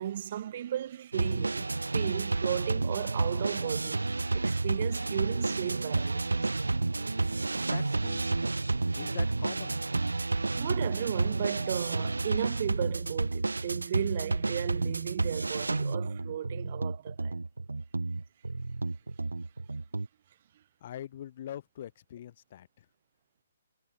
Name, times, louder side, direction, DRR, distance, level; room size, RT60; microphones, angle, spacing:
voice 1, 0.0-1.7 1.9-4.1 4.3-6.5 10.5-17.4, right 10 dB, 45° right, 0.7 m, -35 dB
sound 1, 1.1-20.1, right 3 dB, 85° right, 1.3 m, -31 dB
voice 2, 7.7-8.5 8.9-9.8 20.8-22.9, left 11 dB, 45° left, 2.8 m, -43 dB
figure-of-eight pair, 135°, 0 cm